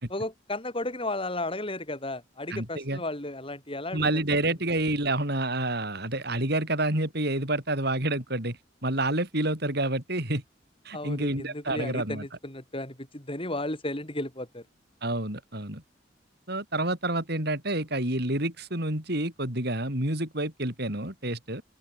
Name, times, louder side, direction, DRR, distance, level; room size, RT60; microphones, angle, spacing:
voice 1, 0.1-4.4 10.9-14.6, left 2 dB, 30° left, 6.8 m, -34 dB
voice 2, 2.5-3.0 3.9-10.4 10.9-12.3 15.0-15.8 16.5-21.6, right 2 dB, 55° right, 7.2 m, -28 dB
open air
head